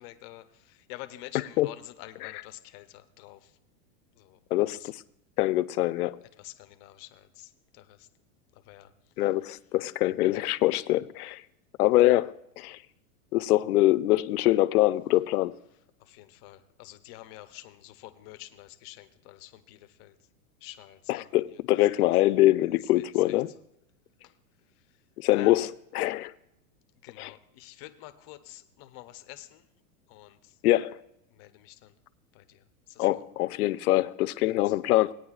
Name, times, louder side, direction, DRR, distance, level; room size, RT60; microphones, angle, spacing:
voice 1, 0.0-3.4 4.2-4.4 4.8-4.9 6.4-8.1 8.7-8.9 16.0-20.1 20.6-21.3 23.3-23.4 24.2-24.3 25.3-25.7 27.0-29.6 30.1-30.5 31.4-31.9 32.3-32.6 32.9-33.1, left 16 dB, 30° left, 0.6 m, -47 dB
voice 2, 1.3-1.7 2.2-2.4 4.5-5.0 5.4-6.2 9.2-11.4 11.8-12.8 13.3-15.6 21.1-23.5 25.2-26.3 27.2-27.3 30.6-31.0 33.0-35.1, left 16 dB, 85° left, 0.6 m, -24 dB
18.0 x 9.4 x 2.4 m
supercardioid pair, 145°, 44 cm